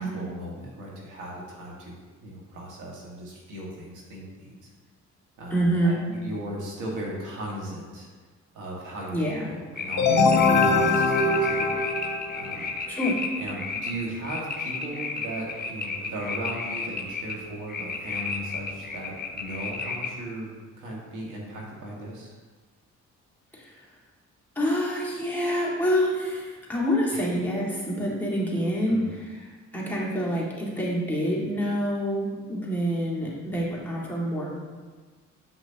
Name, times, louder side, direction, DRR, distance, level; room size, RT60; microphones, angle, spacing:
voice 1, 0.0-4.7 5.4-8.1 8.5-11.7 12.3-12.7 13.4-20.5 20.8-22.4 27.1-27.2 28.8-29.1, right 1 dB, 90° right, -3 dB, 1.8 m, -37 dB
voice 2, 5.5-6.0 9.1-9.5 12.9-13.2 23.5-23.8 24.6-29.5 29.7-34.5, equal, 5° left, -6 dB, 1.9 m, -27 dB
sound 1, 9.8-20.1, left 4 dB, 30° left, 0.8 m, -33 dB
sound 2, 10.0-12.6, left 3 dB, 65° left, 1.0 m, -22 dB
7.9 x 6.1 x 2.8 m, 1.4 s
cardioid pair, 90°, 30 cm